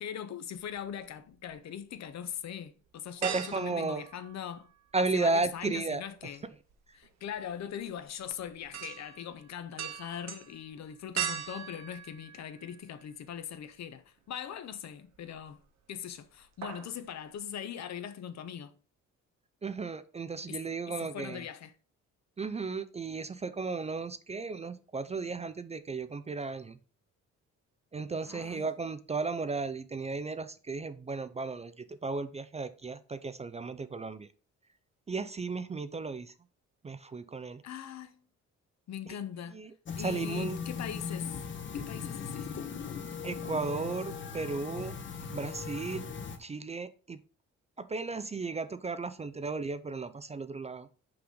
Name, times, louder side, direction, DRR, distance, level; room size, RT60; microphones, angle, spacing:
voice 1, 0.0-4.7 5.0-6.5 7.0-15.6 15.9-18.7 20.5-21.7 28.3-28.7 37.6-38.2 38.9-39.6 40.0-41.4 41.7-42.7, left 9 dB, 65° left, 0.7 m, -41 dB
sound 1, 0.6-1.6 2.0-2.1 3.2-4.9 5.2-13.1 13.5-13.6 15.1-15.7 15.9-16.2 16.4-17.0 17.3-17.4, right 9 dB, 65° right, 1.0 m, -41 dB
voice 2, 3.2-4.0 4.9-6.0 19.6-21.4 22.4-26.8 27.9-34.3 35.1-36.3 36.8-37.6 39.5-39.7 40.0-40.6 43.2-44.9 45.3-46.1 46.4-47.2 47.8-50.9, right 3 dB, 20° right, 0.4 m, -34 dB
sound 2, 39.8-46.4, left 6 dB, 40° left, 0.9 m, -38 dB
5.8 x 4.9 x 3.8 m
cardioid pair, 105°, 30 cm